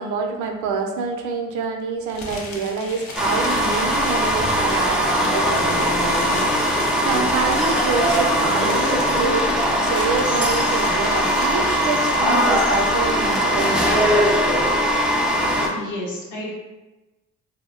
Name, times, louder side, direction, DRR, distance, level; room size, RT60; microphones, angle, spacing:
voice 1, 0.0-6.4 7.0-14.0, right 4 dB, 80° right, 3 dB, 0.5 m, -27 dB
sound 1, 2.1-14.9, left 3 dB, 65° left, 0.6 m, -36 dB
sound 2, 3.2-15.7, equal, 5° right, 0.4 m, -20 dB
voice 2, 15.7-16.5, left 1 dB, 85° left, -4 dB, 0.9 m, -31 dB
2.2 x 2.1 x 3.6 m, 1.1 s
cardioid pair, 90°, 30 cm